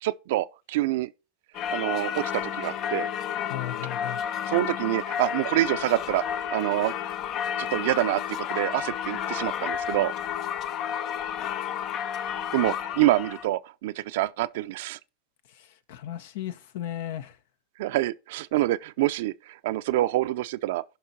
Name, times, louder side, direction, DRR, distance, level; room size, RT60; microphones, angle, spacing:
voice 1, 0.0-1.1 1.7-3.1 4.5-6.9 7.6-10.1 12.3-15.0 17.8-20.8, right 16 dB, 70° right, 0.5 m, -26 dB
Singing / Church bell, 1.5-13.5, left 9 dB, 45° left, 0.6 m, -31 dB
voice 2, 3.5-4.2 15.5-17.4, left 11 dB, 75° left, 0.8 m, -36 dB
15.0 x 5.5 x 2.8 m
hypercardioid pair, 105°, 0 cm